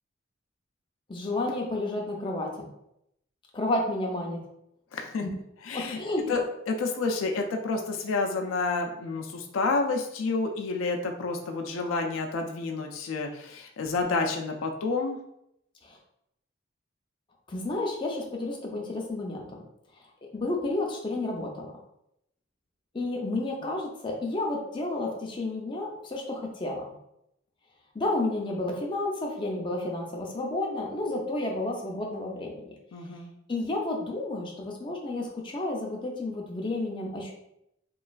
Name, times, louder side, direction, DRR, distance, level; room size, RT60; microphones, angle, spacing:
voice 1, 1.1-2.7 3.5-4.4 5.2-5.3 5.7-6.4 15.8-16.0 17.5-19.6 20.3-21.7 22.9-26.8 27.9-32.8 33.5-37.3, left 2 dB, 25° left, -1 dB, 0.4 m, -31 dB
voice 2, 4.9-5.3 5.6-6.0 6.3-15.2 32.9-33.3, left 3 dB, 85° left, 3 dB, 0.4 m, -29 dB
3.0 x 2.3 x 2.4 m, 0.78 s
head